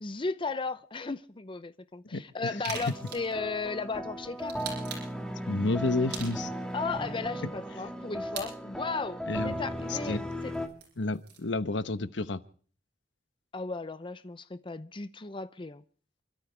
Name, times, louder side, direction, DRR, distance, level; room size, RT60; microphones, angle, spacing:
voice 1, 0.0-4.6 6.7-10.2 10.4-10.5 13.5-15.8, left 4 dB, 30° left, 0.7 m, -35 dB
voice 2, 2.1-2.8 5.5-6.5 9.3-9.6 9.9-10.2 11.0-12.4, left 2 dB, 80° left, 1.1 m, -31 dB
sound 1, 2.6-3.4 4.4-5.2 6.1-6.7 8.3-8.5 10.4-11.5, right 5 dB, 65° right, 7.7 m, -41 dB
sound 2, 2.7-10.7, equal, 5° left, 2.0 m, -37 dB
29.5 x 13.5 x 3.4 m
head